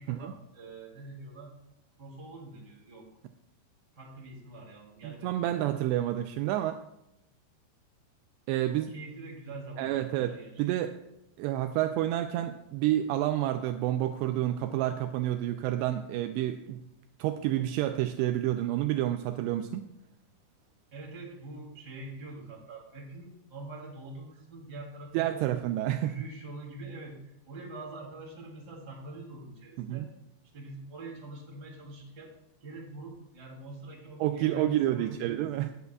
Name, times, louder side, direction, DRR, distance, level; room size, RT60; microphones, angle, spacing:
voice 1, 0.0-1.5 2.0-3.1 3.9-5.6 8.7-10.9 20.9-25.5 25.9-30.1 30.5-32.3 32.6-35.7, right 2 dB, 25° right, -3 dB, 2.7 m, -44 dB
voice 2, 5.0-6.8 8.5-8.9 9.8-10.3 10.6-10.9 11.4-16.8 17.2-19.9 25.1-26.1 29.8-30.1 34.2-35.7, right 13 dB, 85° right, 7 dB, 2.6 m, -29 dB
19.0 x 8.3 x 2.3 m, 0.86 s
omnidirectional pair, 5.1 m